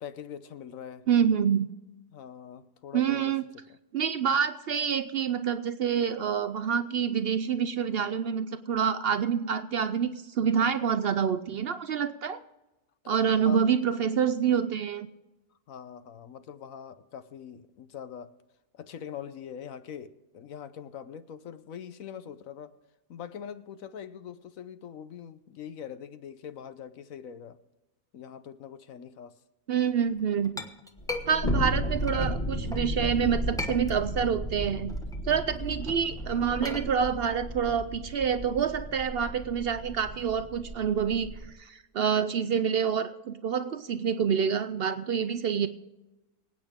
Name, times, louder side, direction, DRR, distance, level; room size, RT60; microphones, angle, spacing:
voice 1, 0.0-1.1 2.1-3.4 3.7-3.8 13.4-13.6 15.7-18.3 18.7-22.8 23.1-27.6 28.1-29.4 31.2-31.6, left 8 dB, 65° left, 1.1 m, -43 dB
voice 2, 1.1-1.7 2.9-3.4 3.9-12.4 13.1-15.1 29.7-30.5 31.3-35.0 35.2-45.7, right 7 dB, 75° right, 0.5 m, -27 dB
Chink clink, 30.0-32.9 33.3-34.4 34.7-38.8, left 2 dB, 5° left, 0.9 m, -40 dB
sound 1, 31.0-41.5, equal, 30° left, 2.0 m, -34 dB
25.0 x 9.0 x 3.6 m
omnidirectional pair, 1.7 m